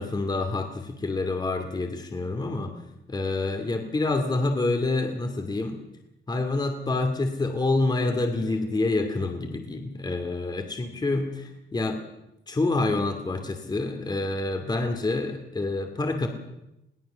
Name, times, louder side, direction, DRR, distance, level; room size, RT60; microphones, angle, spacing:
voice 1, 0.0-2.7 3.1-5.8 6.3-12.0 12.5-16.3, left 2 dB, 20° left, 5 dB, 2.6 m, -27 dB
22.0 x 18.0 x 6.9 m, 0.88 s
cardioid pair, 120°, 19 cm